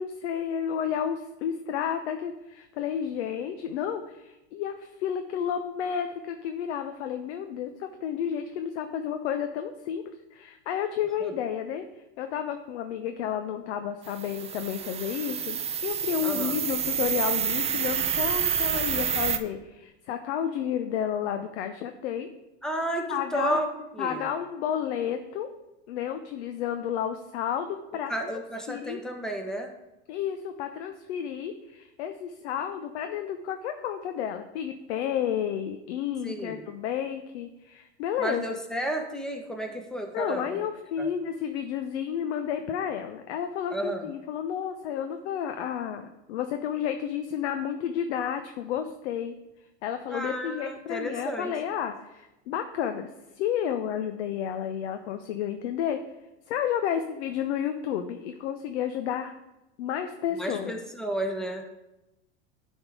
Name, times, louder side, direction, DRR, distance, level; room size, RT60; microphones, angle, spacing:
voice 1, 0.0-22.3 23.1-23.6 24.0-25.5 25.9-28.4 28.7-29.0 30.1-38.6 40.1-49.4 49.8-53.1 53.3-56.0 56.5-59.3 59.8-60.8, left 9 dB, 70° left, 7 dB, 0.7 m, -31 dB
sound 1, 14.0-19.4, right 8 dB, 20° right, 0.4 m, -28 dB
voice 2, 16.2-16.6 22.6-23.7 23.9-24.3 28.1-29.7 36.2-36.6 38.2-40.7 41.0-41.1 43.7-44.1 50.1-51.5 60.4-61.6, right 1 dB, ahead, 3 dB, 1.1 m, -32 dB
10.5 x 3.7 x 4.8 m, 0.96 s
hypercardioid pair, 100°, 35 cm